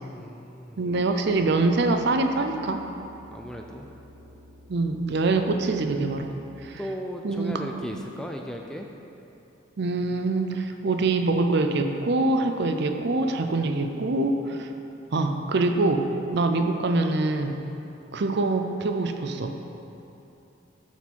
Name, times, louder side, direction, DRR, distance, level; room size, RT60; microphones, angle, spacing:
voice 1, 0.1-0.8 3.3-3.9 6.8-8.9, equal, 5° left, 2 dB, 0.3 m, -36 dB
voice 2, 0.8-2.8 4.7-6.3 6.6-6.8 7.2-7.5 7.9-8.0 9.8-14.7 15.1-17.6 18.1-19.6, right 2 dB, 55° right, 6 dB, 0.5 m, -24 dB
sound 1, 0.9-6.4, left 1 dB, 40° left, 1.5 m, -50 dB
12.5 x 4.3 x 4.5 m, 2.9 s
head